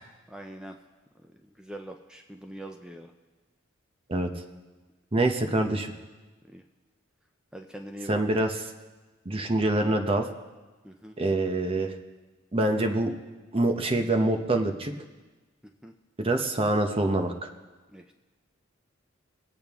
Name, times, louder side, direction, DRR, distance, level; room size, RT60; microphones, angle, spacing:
voice 1, 0.3-0.8 1.2-3.1 6.4-6.6 7.5-8.2 10.8-11.2 15.6-15.9 17.9-18.1, right 1 dB, 5° right, 4 dB, 0.5 m, -43 dB
voice 2, 5.1-5.9 8.1-8.5 9.2-10.3 11.2-11.9 12.5-13.1 13.5-14.9 16.2-17.3, right 2 dB, 30° right, 4 dB, 0.9 m, -25 dB
20.5 x 8.7 x 3.6 m, 1.2 s
head